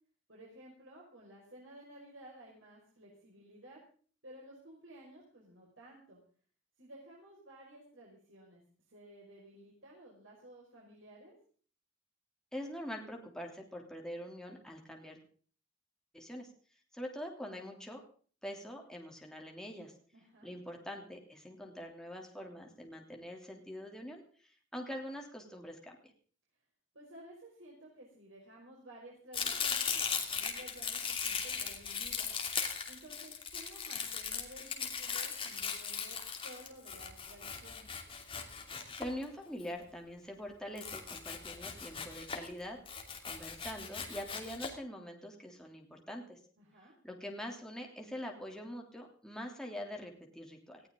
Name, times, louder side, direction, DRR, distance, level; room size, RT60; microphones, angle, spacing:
voice 1, 0.3-3.8 4.2-6.2 6.8-8.6 8.9-11.3 20.1-20.5 26.9-32.3 32.9-37.9 46.6-46.9, right 1 dB, 80° right, -3 dB, 5.5 m, -54 dB
voice 2, 12.5-15.2 16.1-16.5 16.9-18.0 18.4-19.9 20.4-26.0 39.0-46.4 47.0-50.8, equal, 5° left, 1 dB, 3.0 m, -44 dB
Domestic sounds home sounds, 29.3-39.6 40.8-42.5 42.9-44.7, left 6 dB, 30° left, 2.8 m, -38 dB
19.5 x 15.5 x 3.8 m, 0.43 s
head